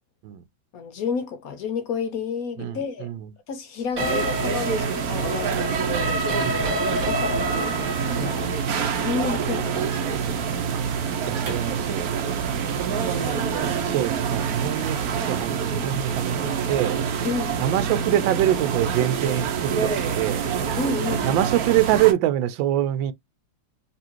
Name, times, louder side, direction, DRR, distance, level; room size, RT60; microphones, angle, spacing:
voice 1, 0.7-3.1 3.5-6.2 7.0-8.5 9.0-10.0 13.1-14.0 17.2-17.6 20.8-21.4, left 5 dB, 70° left, 0.9 m, -31 dB
voice 2, 2.6-3.2 6.3-6.7 10.7-10.8 11.2-12.2 13.1-13.4 13.8-15.0 15.3-17.0 17.6-20.4 21.2-23.1, right 13 dB, 85° right, 1.3 m, -25 dB
sound 1, 4.0-11.8, left 1 dB, 45° right, 1.7 m, -30 dB
sound 2, 4.0-22.1, right 7 dB, 60° right, 1.2 m, -26 dB
4.2 x 3.0 x 2.8 m
omnidirectional pair, 2.0 m